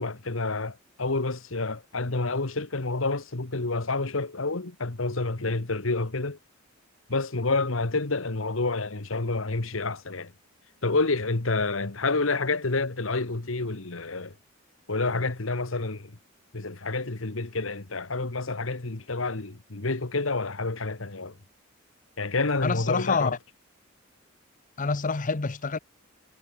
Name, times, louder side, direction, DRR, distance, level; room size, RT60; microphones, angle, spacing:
voice 1, 0.0-6.4 7.1-10.3 10.8-14.3 14.9-16.2 16.5-21.4 22.2-23.3, left 3 dB, 75° left, 1.6 m, -29 dB
voice 2, 22.6-23.4 24.8-25.8, left 4 dB, 40° left, 0.8 m, -27 dB
head